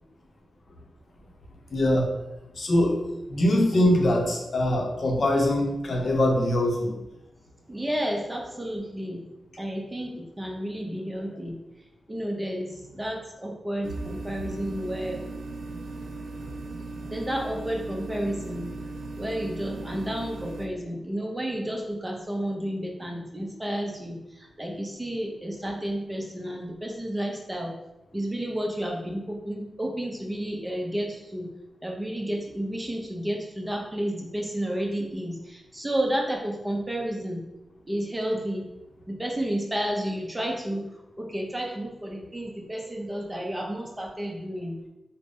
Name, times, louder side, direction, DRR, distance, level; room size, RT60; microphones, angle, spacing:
voice 1, 1.7-2.1 2.5-6.9, left 1 dB, 55° left, 1 dB, 0.7 m, -23 dB
voice 2, 7.7-9.2 9.6-11.6 12.1-15.2 17.1-18.7 19.2-27.7 28.1-31.5 31.8-37.4 37.9-38.7 39.1-40.9 41.2-44.8, equal, 15° right, 0 dB, 0.6 m, -31 dB
sound 1, 13.8-20.7, right 3 dB, 75° right, 0.4 m, -38 dB
3.8 x 2.1 x 3.5 m, 0.95 s
wide cardioid pair, 105°, 0 cm